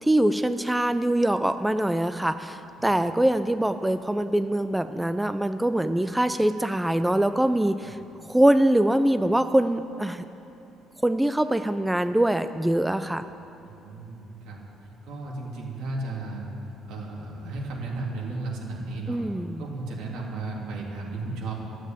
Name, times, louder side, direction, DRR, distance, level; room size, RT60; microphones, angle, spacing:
voice 1, 0.0-8.0 8.3-10.3 11.0-13.3 19.1-19.6, right 1 dB, 5° right, 10 dB, 0.3 m, -23 dB
voice 2, 13.6-14.6 15.0-16.5 16.9-19.2 19.6-21.5, right 2 dB, 85° right, -2 dB, 3.1 m, -34 dB
13.0 x 9.3 x 9.0 m, 3.0 s
cardioid pair, 160°, 0 cm